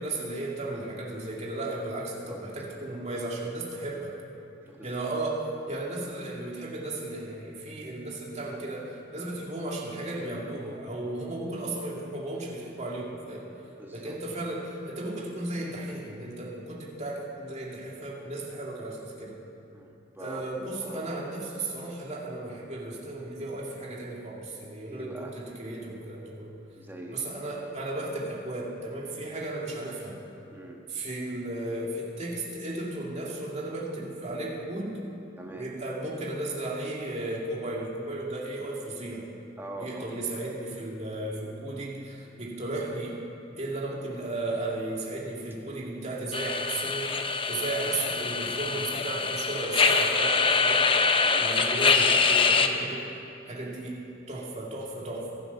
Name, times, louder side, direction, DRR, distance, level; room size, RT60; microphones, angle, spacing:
voice 1, 0.0-4.1 4.8-13.5 13.9-19.4 20.2-26.5 27.1-30.2 30.9-35.0 35.6-39.2 39.8-43.2 43.6-47.1 47.5-50.9 51.4-53.1 53.5-54.0 54.3-55.4, right 2 dB, 35° right, -3 dB, 2.5 m, -35 dB
voice 2, 4.6-4.9 13.8-14.2 19.7-20.5 20.8-21.0 24.9-25.3 26.8-27.3 30.5-30.8 35.4-35.7 39.6-40.2 51.2-51.5, right 2 dB, 10° right, 0 dB, 1.5 m, -43 dB
sound 1, 46.3-52.7, left 4 dB, 25° left, 0.7 m, -24 dB
24.0 x 8.3 x 5.8 m, 2.9 s
head